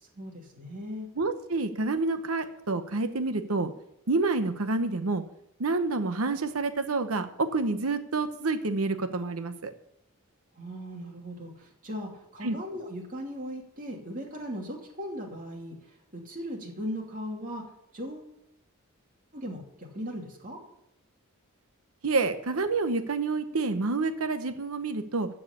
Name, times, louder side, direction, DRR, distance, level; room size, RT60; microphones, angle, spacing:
voice 1, 0.1-1.1 10.5-15.7 16.1-17.6 17.9-18.3 19.3-20.6, equal, 40° right, -1 dB, 2.6 m, -38 dB
voice 2, 1.2-3.7 4.1-5.2 5.6-9.7 12.4-12.6 22.0-25.3, right 3 dB, 85° right, 8 dB, 0.9 m, -28 dB
14.0 x 4.8 x 8.5 m, 0.77 s
head